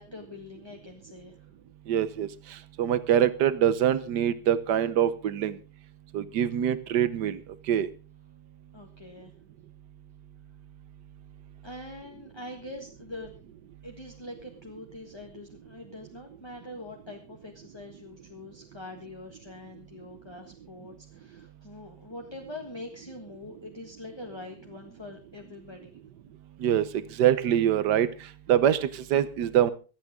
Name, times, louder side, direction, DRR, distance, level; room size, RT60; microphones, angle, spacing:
voice 1, 0.0-1.4 8.7-9.3 11.6-13.3 13.8-26.0, left 2 dB, 15° left, 2 dB, 1.6 m, -44 dB
voice 2, 1.9-5.6 6.1-7.4 7.7-7.9 26.6-28.1 28.5-29.7, right 10 dB, 85° right, 14 dB, 1.5 m, -24 dB
25.0 x 8.8 x 3.7 m, 0.34 s
omnidirectional pair, 1.8 m